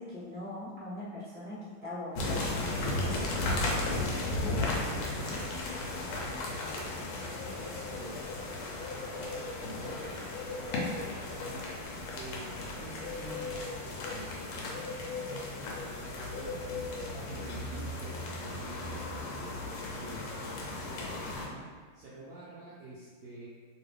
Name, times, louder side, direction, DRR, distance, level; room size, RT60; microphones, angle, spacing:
voice 1, 0.0-2.7 3.0-3.5 4.4-5.3, left 1 dB, 10° left, -11 dB, 0.7 m, -42 dB
sound 1, 2.2-21.5, left 2 dB, 85° left, 1.5 m, -35 dB
voice 2, 3.4-5.1 6.0-7.0 7.5-8.3 9.0-10.2 11.4-11.7 12.1-14.9 15.6-16.8 17.3-23.5, right 1 dB, 90° right, -7 dB, 0.8 m, -48 dB
3.1 x 3.1 x 3.1 m, 1.5 s
omnidirectional pair, 2.3 m